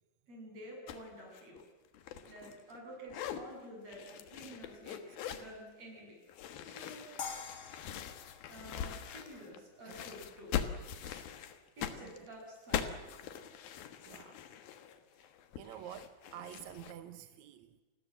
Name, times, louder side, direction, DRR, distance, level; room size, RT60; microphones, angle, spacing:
voice 1, 0.3-1.6 2.3-5.0 5.3-6.2 6.6-7.1 8.5-10.5 11.8-13.1, equal, 45° right, 9.1 m, -50 dB
sound 1, 0.9-1.1 1.3-2.8 3.1-3.4 3.9-5.5 6.3-9.6 9.9-16.9, left 9 dB, 80° left, 3.3 m, -42 dB
sound 2, 7.2-10.2, left 6 dB, 40° left, 2.4 m, -47 dB
voice 2, 10.9-11.3 12.0-12.1 14.0-14.4 15.6-17.8, right 11 dB, 70° right, 1.9 m, -49 dB
29.5 x 20.5 x 7.5 m
omnidirectional pair, 4.3 m